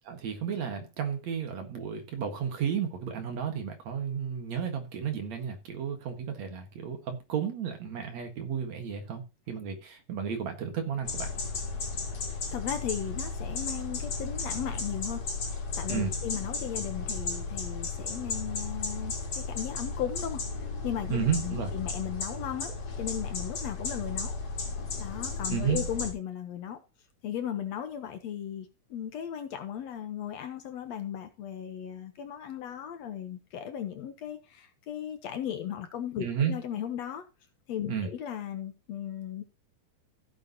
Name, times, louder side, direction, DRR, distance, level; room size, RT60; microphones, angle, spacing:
voice 1, 0.1-11.3 15.9-16.1 21.1-21.7 25.5-25.8 36.2-36.5 37.9-38.1, right 7 dB, 65° right, 2.9 m, -32 dB
sound 1, 11.0-26.1, left 4 dB, 50° left, 3.6 m, -34 dB
voice 2, 12.5-15.2 15.8-24.3 25.0-26.8 27.2-37.2 37.7-39.4, left 9 dB, 65° left, 2.0 m, -36 dB
15.0 x 8.1 x 2.9 m
omnidirectional pair, 3.6 m